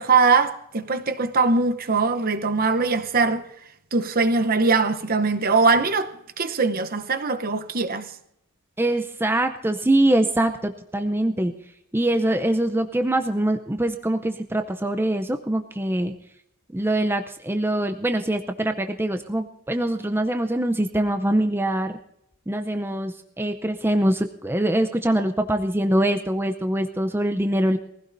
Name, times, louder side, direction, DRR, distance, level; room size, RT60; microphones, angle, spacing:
voice 1, 0.0-3.4 3.9-6.1 6.4-8.1, right 4 dB, 40° right, 0.8 m, -21 dB
voice 2, 8.8-11.5 11.9-16.1 16.7-22.0 22.5-27.8, right 1 dB, 10° right, 0.6 m, -23 dB
22.5 x 16.0 x 2.7 m
head